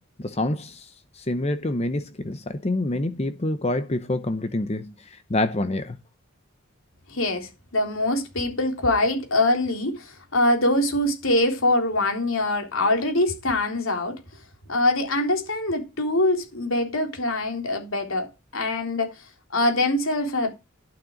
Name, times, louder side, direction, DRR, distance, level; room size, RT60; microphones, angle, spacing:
voice 1, 0.2-6.0, left 2 dB, 30° left, 0.7 m, -27 dB
voice 2, 7.1-14.2 14.7-19.1 19.5-20.5, left 1 dB, 85° left, 3.6 m, -23 dB
12.0 x 6.8 x 5.0 m
head